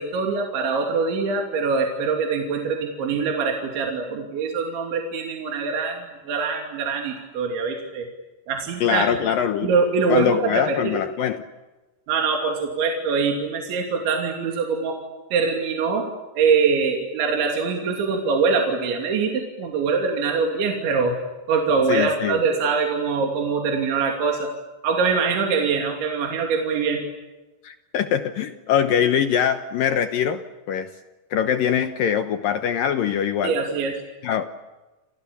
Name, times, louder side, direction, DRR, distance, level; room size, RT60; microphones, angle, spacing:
voice 1, 0.0-8.1 8.5-9.1 9.6-11.0 12.1-15.0 15.3-16.1 16.4-21.2 21.5-24.5 24.8-27.0 33.4-34.0, right 5 dB, 70° right, 2 dB, 5.1 m, -23 dB
voice 2, 8.8-9.7 10.1-11.4 21.9-22.4 27.6-30.4 30.7-30.9 31.3-33.5 34.2-34.4, left 8 dB, 80° left, 9 dB, 2.0 m, -23 dB
29.0 x 28.5 x 7.1 m, 1.1 s
omnidirectional pair, 5.6 m